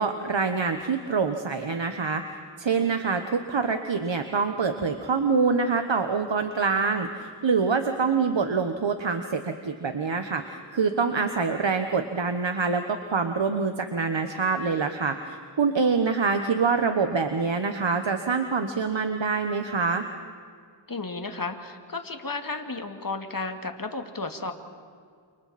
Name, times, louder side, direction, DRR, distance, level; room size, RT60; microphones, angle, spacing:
voice 1, 0.0-20.1, right 5 dB, 65° right, 6 dB, 1.3 m, -25 dB
voice 2, 20.9-24.5, left 3 dB, 45° left, 5 dB, 2.3 m, -33 dB
30.0 x 28.5 x 4.3 m, 2.2 s
wide cardioid pair, 60°, 48 cm